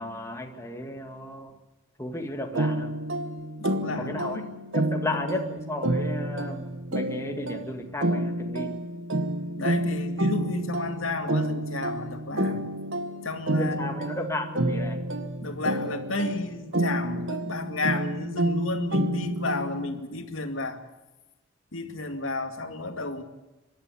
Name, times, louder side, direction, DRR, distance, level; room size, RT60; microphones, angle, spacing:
voice 1, 0.0-1.5 2.0-2.9 4.0-4.4 4.7-8.7 13.6-15.0, left 1 dB, 15° left, 3 dB, 2.1 m, -34 dB
sound 1, 2.5-20.0, right 1 dB, 75° right, 1.9 m, -29 dB
voice 2, 3.6-4.5 5.1-5.2 9.6-12.6 13.2-13.9 15.4-20.8 21.7-23.2, left 2 dB, 80° left, 6 dB, 2.4 m, -32 dB
25.0 x 12.5 x 9.9 m, 1.1 s
head